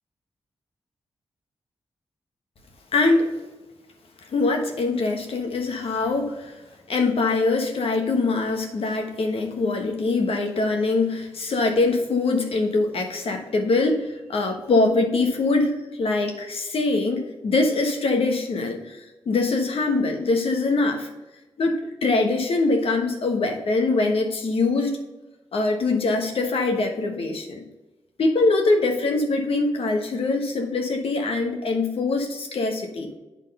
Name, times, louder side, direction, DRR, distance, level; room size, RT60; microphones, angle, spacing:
voice 1, 2.9-3.3 4.3-6.6 6.9-21.1 21.6-25.0 25.5-27.6 28.2-33.1, left 3 dB, 75° left, 3 dB, 1.2 m, -23 dB
8.9 x 3.8 x 5.4 m, 1.1 s
cardioid pair, 50°, 10 cm